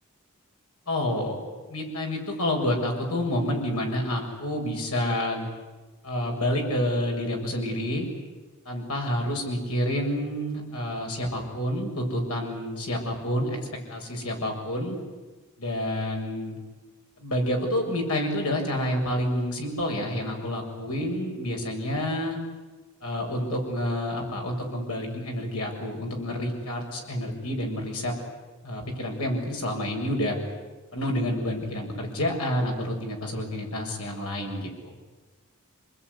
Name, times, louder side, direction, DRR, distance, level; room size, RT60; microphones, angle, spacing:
voice 1, 0.9-1.4 1.7-5.4 6.0-8.1 8.7-13.6 13.9-15.0 15.6-16.6 17.2-22.4 23.0-28.1 28.6-30.4 30.9-35.0, left 1 dB, 90° left, 1 dB, 7.2 m, -28 dB
27.5 x 20.5 x 9.9 m, 1.2 s
head